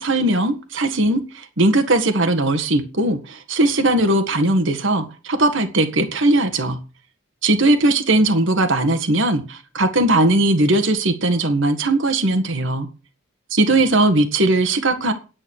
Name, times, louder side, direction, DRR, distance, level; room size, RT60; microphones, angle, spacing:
voice 1, 0.0-6.8 7.4-12.9 13.5-15.1, right 2 dB, 65° right, 7 dB, 1.8 m, -19 dB
9.8 x 9.1 x 6.4 m, 0.34 s
head